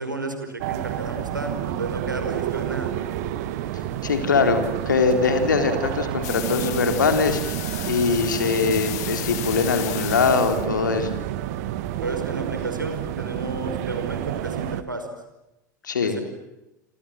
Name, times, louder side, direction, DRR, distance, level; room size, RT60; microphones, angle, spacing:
voice 1, 0.0-2.9 11.9-15.1 16.0-16.2, right 2 dB, 90° right, 6 dB, 5.5 m, -32 dB
sound 1, 0.6-14.8, right 12 dB, 55° right, 1.8 m, -30 dB
voice 2, 4.0-7.4 7.9-11.2 15.8-16.2, left 5 dB, 75° left, 7 dB, 4.0 m, -22 dB
sound 2, 6.2-10.7, left 18 dB, 60° left, 1.6 m, -34 dB
29.0 x 27.0 x 7.5 m, 0.95 s
figure-of-eight pair, 80°, 10 cm